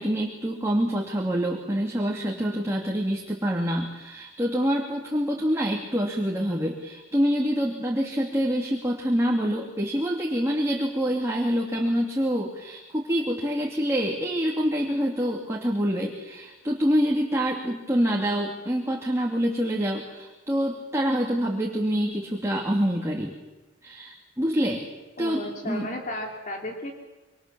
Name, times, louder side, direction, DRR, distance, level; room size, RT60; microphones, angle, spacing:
voice 1, 0.0-23.3 23.8-24.8 25.2-25.9, equal, 15° right, -1 dB, 2.9 m, -26 dB
voice 2, 25.2-26.9, left 1 dB, 45° left, 1 dB, 2.8 m, -34 dB
26.0 x 25.5 x 7.2 m, 1.1 s
head